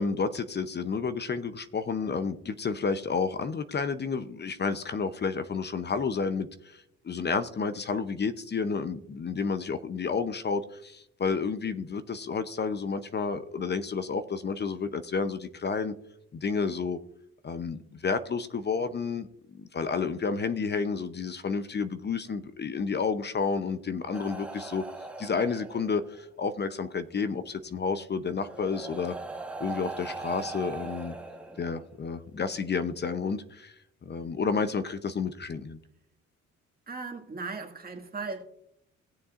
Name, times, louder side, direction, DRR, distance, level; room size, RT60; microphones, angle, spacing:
voice 1, 0.0-15.9 16.3-17.0 17.4-24.8 25.2-29.2 29.6-31.1 31.6-33.7 34.1-35.8, left 5 dB, 35° left, 0.7 m, -31 dB
sound 1, 24.1-26.3 27.6-27.7 28.4-32.1 33.1-33.3, right 3 dB, 5° right, 1.1 m, -40 dB
voice 2, 36.9-38.4, right 4 dB, 30° right, 2.0 m, -37 dB
19.0 x 6.9 x 2.5 m
cardioid pair, 90°, 30 cm